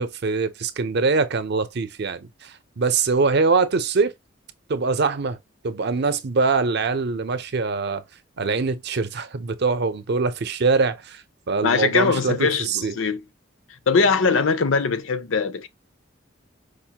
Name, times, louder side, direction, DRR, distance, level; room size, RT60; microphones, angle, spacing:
voice 1, 0.0-4.1 4.7-5.4 5.6-8.0 8.4-12.9, right 4 dB, 60° right, 0.6 m, -23 dB
voice 2, 11.6-13.2 13.9-15.7, left 4 dB, 85° left, 0.6 m, -21 dB
5.1 x 2.1 x 2.8 m
head